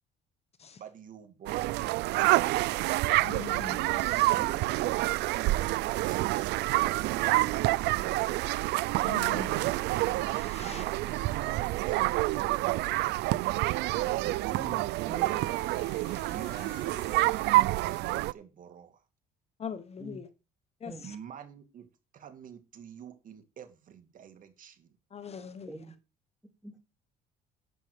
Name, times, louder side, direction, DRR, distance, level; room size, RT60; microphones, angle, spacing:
voice 1, 0.7-2.2 4.3-6.5 6.8-8.4 10.6-12.0 12.5-13.1 16.3-17.6 17.9-19.0 21.0-21.9 22.1-25.0, right 8 dB, 50° right, 2.6 m, -47 dB
sound 1, 1.5-18.3, right 19 dB, 85° right, 0.5 m, -28 dB
voice 2, 3.1-4.4 9.0-9.7 10.3-10.8 14.0-14.2 19.6-20.3 20.8-21.1 25.1-25.7, left 7 dB, 40° left, 1.2 m, -42 dB
sound 2, 10.3-17.7, left 8 dB, 70° left, 4.1 m, -57 dB
voice 3, 14.5-15.5 20.0-20.2 20.8-21.1 25.7-25.9 26.6-26.8, right 1 dB, 5° right, 3.4 m, -45 dB
11.5 x 8.3 x 5.1 m
cardioid pair, 110°, 17 cm